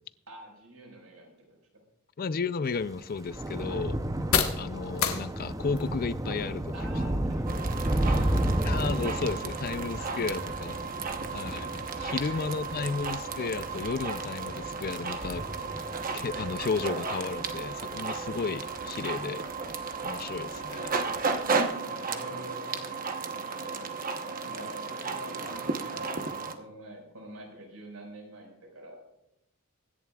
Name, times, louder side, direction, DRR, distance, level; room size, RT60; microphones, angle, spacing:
voice 1, 0.3-1.6 3.5-3.7 6.7-8.4 10.0-11.0 11.6-12.7 16.6-16.9 21.2-23.9 24.3-29.1, right 1 dB, 75° right, 5.2 m, -47 dB
sound 1, 2.2-19.8, left 7 dB, 65° left, 1.5 m, -40 dB
voice 2, 2.2-4.0 4.5-6.7 8.7-10.7 11.3-11.9 12.1-15.5 16.1-19.4 20.0-21.0, left 4 dB, 45° left, 0.4 m, -33 dB
Thunder / Rain, 2.7-19.3 19.7-20.1 20.4-20.6, right 1 dB, 15° right, 0.7 m, -33 dB
sound 2, 7.5-26.5, right 4 dB, 40° right, 1.0 m, -34 dB
24.5 x 11.0 x 2.4 m
head